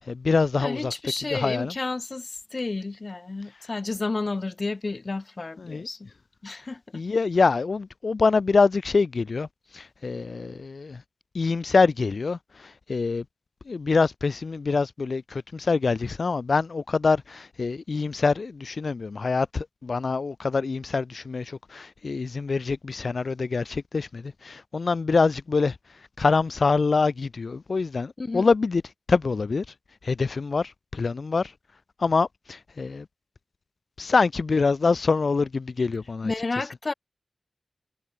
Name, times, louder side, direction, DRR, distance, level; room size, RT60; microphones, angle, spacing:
voice 1, 0.0-0.9 1.3-1.7 5.6-5.9 6.9-9.5 9.7-11.0 11.3-13.3 13.7-28.8 29.1-29.7 30.0-31.5 32.0-33.1 34.0-36.3, left 4 dB, 60° left, 5.3 m, -25 dB
voice 2, 0.6-6.1 6.4-7.0 28.2-28.5 36.2-36.9, left 3 dB, 40° left, 6.5 m, -31 dB
wide cardioid pair, 105°, 0 cm